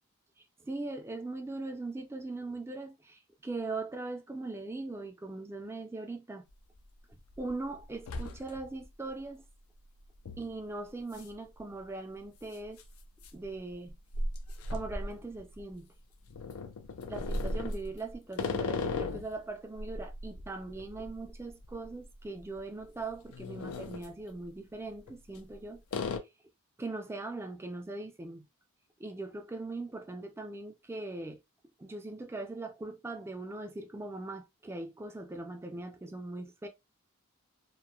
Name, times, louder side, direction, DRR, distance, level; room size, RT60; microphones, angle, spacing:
voice 1, 0.6-6.4 7.1-9.4 10.4-12.8 13.3-13.9 14.7-15.9 17.1-25.8 26.1-26.2 26.8-28.5 29.0-31.4 31.8-36.7, right 2 dB, 10° right, 0.3 m, -40 dB
sound 1, 6.5-6.6 7.1-7.5 7.8-8.8 9.2-9.3 10.3-10.5 11.1-11.3 11.6-11.7 12.6-15.7 16.3-19.4 19.8-22.1 22.4-22.6 23.1-24.1 25.0-25.5 25.9-26.2, left 2 dB, 90° left, 0.4 m, -37 dB
2.9 x 2.1 x 2.2 m
head